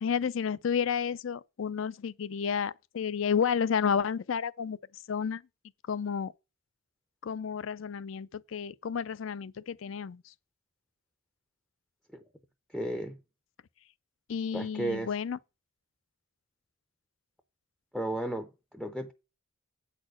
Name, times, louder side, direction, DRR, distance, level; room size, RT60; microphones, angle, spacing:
voice 1, 0.0-5.4 5.9-6.3 7.2-10.3 14.3-15.4, left 7 dB, 70° left, 0.4 m, -31 dB
voice 2, 12.7-13.2 14.5-15.1 17.9-19.1, right 1 dB, ahead, 0.5 m, -34 dB
8.7 x 4.3 x 6.3 m
head